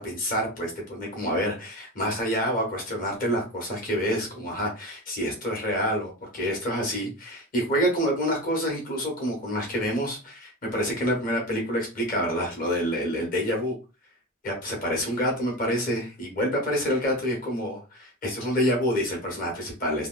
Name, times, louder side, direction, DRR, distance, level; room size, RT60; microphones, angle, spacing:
voice 1, 0.0-13.7 14.4-20.1, equal, 40° left, -1 dB, 1.3 m, -27 dB
3.3 x 2.3 x 2.4 m, 0.30 s
head